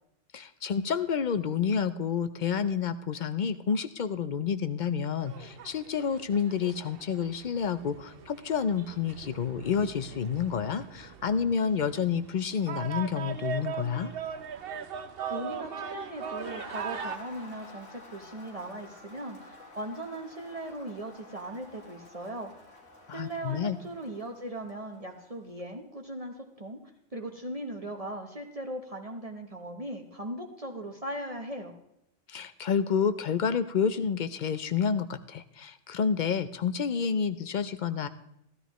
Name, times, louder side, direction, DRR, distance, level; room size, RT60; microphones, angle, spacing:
voice 1, 0.3-14.1 23.1-23.8 32.3-38.1, left 7 dB, 55° left, 12 dB, 0.5 m, -29 dB
sound 1, 5.2-17.2, right 7 dB, 60° right, 0.8 m, -40 dB
Crowd, 13.0-25.5, left 2 dB, 85° left, 2.1 m, -51 dB
voice 2, 15.3-22.5 23.1-26.8 27.1-31.7, right 1 dB, 35° right, 3 dB, 0.9 m, -39 dB
15.5 x 13.0 x 3.0 m, 0.79 s
omnidirectional pair, 1.2 m